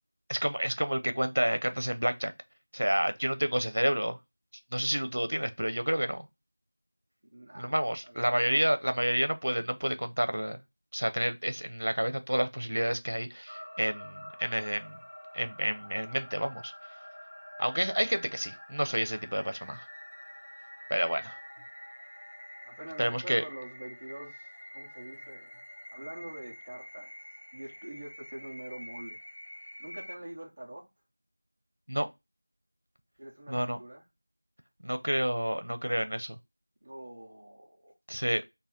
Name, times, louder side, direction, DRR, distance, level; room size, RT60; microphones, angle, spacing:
voice 1, 0.3-2.3 2.7-4.2 4.7-6.3 7.5-10.6 10.9-15.0 15.3-16.7 17.6-19.9 20.9-21.4 23.0-23.4 31.9-32.1 33.5-33.8 34.8-36.4 38.1-38.4, equal, 75° right, 0.6 m, -29 dB
voice 2, 7.3-7.7 8.0-8.6 22.6-25.6 25.9-27.1 27.5-29.2 29.8-30.9 33.2-34.0 36.8-38.0, right 1 dB, 15° right, 0.4 m, -45 dB
sound 1, 13.5-30.2, equal, 85° left, 0.7 m, -47 dB
5.4 x 2.2 x 2.8 m
figure-of-eight pair, 180°, 0 cm